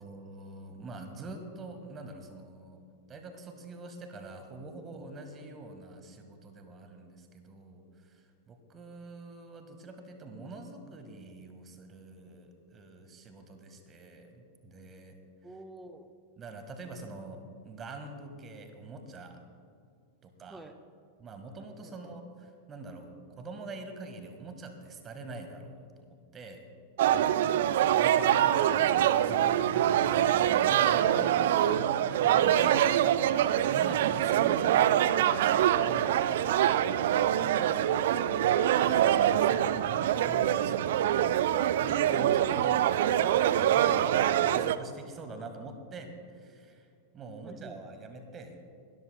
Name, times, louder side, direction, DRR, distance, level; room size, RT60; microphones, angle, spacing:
voice 1, 0.0-2.8 3.1-15.2 15.5-15.6 16.4-19.4 20.2-20.6 21.2-26.6 27.1-27.4 27.9-31.7 32.1-38.1 38.9-43.4 43.7-46.9 47.1-48.6, right 2 dB, 25° right, 7 dB, 1.6 m, -45 dB
voice 2, 15.4-16.1 20.5-20.7 21.8-22.1 47.4-47.8, right 2 dB, 10° right, 7 dB, 0.9 m, -50 dB
sound 1, 27.0-44.8, right 11 dB, 55° right, 0.4 m, -25 dB
22.0 x 13.0 x 2.2 m, 2.3 s
figure-of-eight pair, 90°, 0 cm